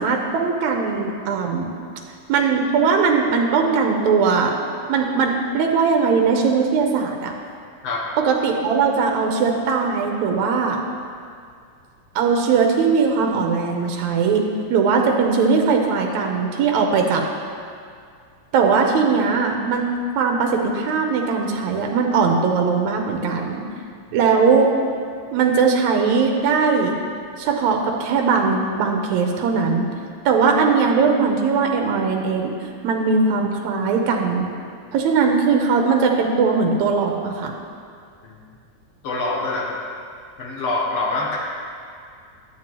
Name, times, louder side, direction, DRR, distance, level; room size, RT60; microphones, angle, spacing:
voice 1, 0.0-1.7 2.3-4.6 4.9-7.3 8.2-10.8 12.2-14.4 14.7-17.2 18.5-19.9 20.2-23.6 24.1-24.7 25.3-26.9 27.4-29.9 30.3-32.5 32.8-34.5 34.9-37.5, right 5 dB, 80° right, 2 dB, 2.0 m, -19 dB
voice 2, 7.8-8.1 38.2-38.4 39.0-39.8 40.4-41.4, left 2 dB, 70° left, -3 dB, 1.8 m, -25 dB
11.5 x 7.6 x 3.0 m, 2.2 s
omnidirectional pair, 3.4 m